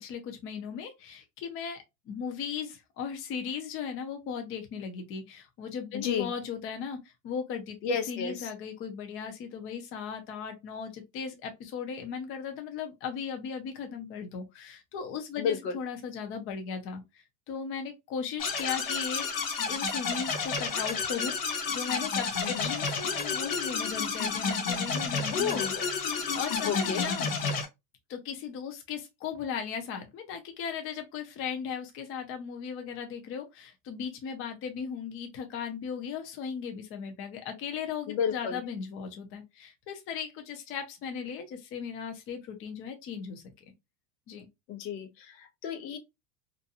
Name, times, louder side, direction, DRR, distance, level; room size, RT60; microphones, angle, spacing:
voice 1, 0.0-19.3 19.7-27.3 28.1-43.4 44.3-44.5, left 6 dB, 25° left, 0.5 m, -37 dB
voice 2, 5.9-6.3 7.8-8.5 15.4-15.8 22.4-22.7 25.3-25.8 26.6-27.1 38.1-38.6 44.7-46.0, left 7 dB, 85° left, 0.8 m, -32 dB
sound 1, 18.4-27.7, left 5 dB, 45° left, 0.9 m, -31 dB
2.6 x 2.2 x 2.6 m
supercardioid pair, 135°, 49 cm